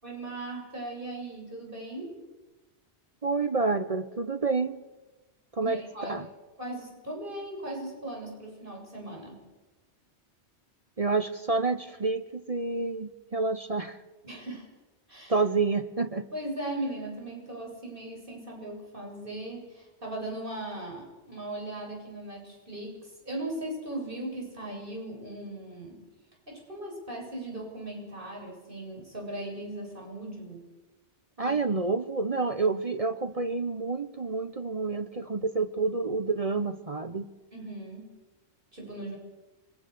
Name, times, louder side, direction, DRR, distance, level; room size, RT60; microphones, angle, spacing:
voice 1, 0.0-2.1 5.6-6.2 6.6-9.4 14.2-14.7 15.1-15.3 16.3-23.0 23.2-26.0 26.5-30.6 31.4-31.6 37.5-38.1 38.7-39.2, right 1 dB, 50° right, 7.9 m, -38 dB
voice 2, 3.2-4.8 5.5-6.3 11.0-14.0 15.3-16.3 31.4-37.3, right 3 dB, 35° right, 1.0 m, -28 dB
27.5 x 23.5 x 6.9 m
omnidirectional pair, 1.2 m